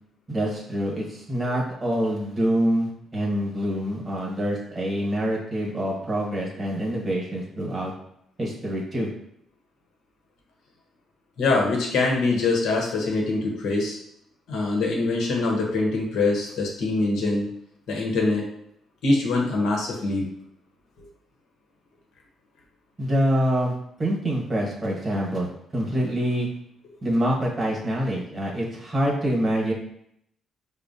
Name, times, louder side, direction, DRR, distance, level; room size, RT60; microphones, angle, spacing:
voice 1, 0.3-7.9 8.4-9.1 23.0-23.7 24.0-26.5 27.0-29.7, equal, 30° right, -2 dB, 1.2 m, -26 dB
voice 2, 11.4-14.0 14.5-17.5 17.9-18.5 19.0-20.3, left 3 dB, 80° left, 0 dB, 0.9 m, -23 dB
4.9 x 2.1 x 2.6 m, 0.72 s
cardioid pair, 90°, 0 cm